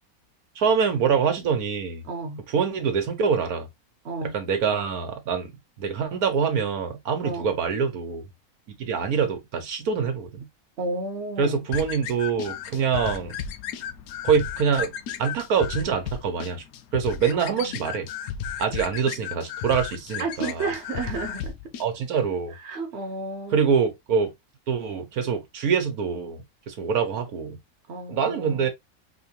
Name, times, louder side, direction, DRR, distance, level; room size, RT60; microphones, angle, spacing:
voice 1, 0.6-2.0 2.5-3.7 4.2-5.5 5.8-8.2 8.7-10.5 11.4-13.4 14.2-14.9 15.2-16.6 16.9-18.1 18.6-20.7 21.8-22.5 23.5-24.3 24.7-27.6 28.1-28.7, right 6 dB, 85° right, 1.5 m, -25 dB
voice 2, 2.0-2.4 4.0-4.4 7.2-7.5 10.8-11.7 17.3-17.9 20.2-21.6 22.5-23.6 27.9-28.7, right 3 dB, 55° right, 1.2 m, -32 dB
sound 1, 11.7-21.9, left 8 dB, 85° left, 1.1 m, -34 dB
4.4 x 3.1 x 2.9 m
omnidirectional pair, 1.5 m